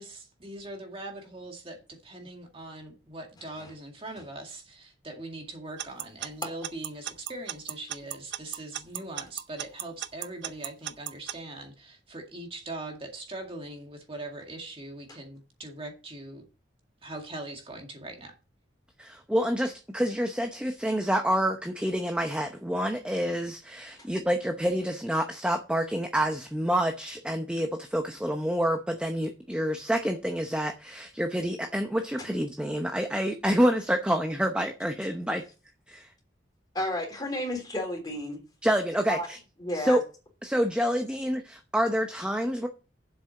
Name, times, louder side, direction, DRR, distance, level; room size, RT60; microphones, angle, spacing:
voice 1, 0.0-16.4 17.0-18.3, right 2 dB, 30° right, 2.0 m, -41 dB
Alarm / Clock, 5.8-11.3, right 11 dB, 80° right, 0.6 m, -35 dB
voice 2, 19.0-35.4 35.9-36.1 38.6-39.4 39.7-40.0 40.4-42.7, equal, 5° right, 0.8 m, -28 dB
voice 3, 36.7-38.4 39.1-39.3 39.6-40.0, left 1 dB, 20° left, 3.5 m, -32 dB
7.7 x 6.2 x 7.0 m
head